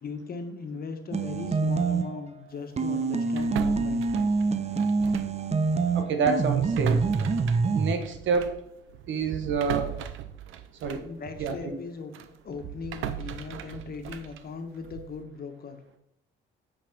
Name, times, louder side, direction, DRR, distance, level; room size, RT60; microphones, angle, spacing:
voice 1, 0.0-4.1 9.7-9.8 11.0-15.8, left 4 dB, 50° left, 6 dB, 1.5 m, -38 dB
sound 1, 1.1-2.3 2.8-7.9, right 4 dB, 35° right, 0.7 m, -26 dB
sound 2, 3.4-5.4 5.7-5.9 6.5-11.7 12.1-15.2, right 10 dB, 90° right, 0.7 m, -38 dB
voice 2, 5.9-7.0 7.7-8.6 9.1-9.9 10.8-11.0 11.4-11.8, right 5 dB, 70° right, 6 dB, 1.2 m, -27 dB
8.7 x 5.2 x 5.1 m, 0.75 s
cardioid pair, 90°, 20 cm